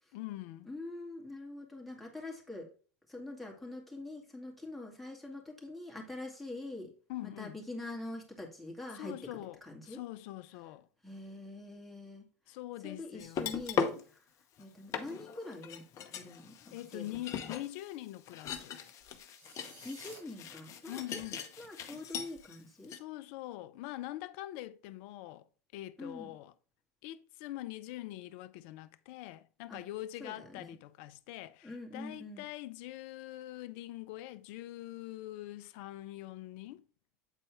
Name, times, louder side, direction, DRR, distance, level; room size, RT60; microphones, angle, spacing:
voice 1, 0.1-0.7 7.1-7.6 8.9-10.9 12.5-13.6 16.1-16.2 16.7-18.7 20.9-21.4 22.9-25.5 25.7-26.5 27.0-36.8, left 15 dB, 60° left, 0.5 m, -44 dB
voice 2, 0.7-2.7 3.1-6.9 7.4-9.1 9.6-10.0 11.0-12.2 12.8-14.0 14.6-15.8 16.2-17.4 19.8-21.2 21.6-22.9 26.0-26.3 29.7-29.8 30.2-30.8 31.6-32.4, left 2 dB, ahead, 2.2 m, -44 dB
sound 1, 13.2-14.0 14.6-14.7 14.9-22.6 22.8-23.0, left 6 dB, 45° left, 0.8 m, -39 dB
sound 2, 19.3-20.2, right 3 dB, 75° right, 2.7 m, -53 dB
8.2 x 4.1 x 3.4 m
hypercardioid pair, 90°, 8 cm